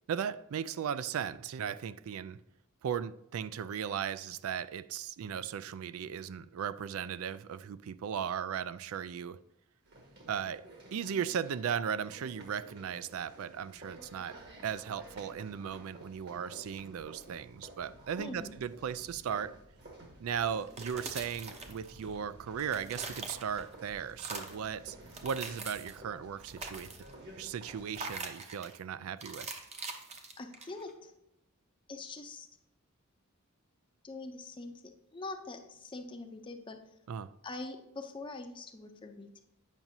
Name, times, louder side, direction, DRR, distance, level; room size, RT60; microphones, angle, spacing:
voice 1, 0.1-2.4 2.8-9.4 10.3-10.7 10.9-19.6 20.2-25.0 25.2-27.0 27.4-29.5 37.1-37.3, right 8 dB, 80° right, 0.3 m, -37 dB
sound 1, 9.8-28.2, right 1 dB, 50° right, 1.5 m, -53 dB
voice 2, 18.2-18.5 30.4-31.1 31.9-32.5 34.0-37.0 37.4-39.4, left 2 dB, 25° left, 0.5 m, -44 dB
sound 2, 20.6-22.2 22.5-23.7 24.1-24.7 25.1-26.0 26.4-27.2 27.9-28.8 29.2-30.9, right 3 dB, 30° right, 0.7 m, -43 dB
8.9 x 5.9 x 2.7 m
head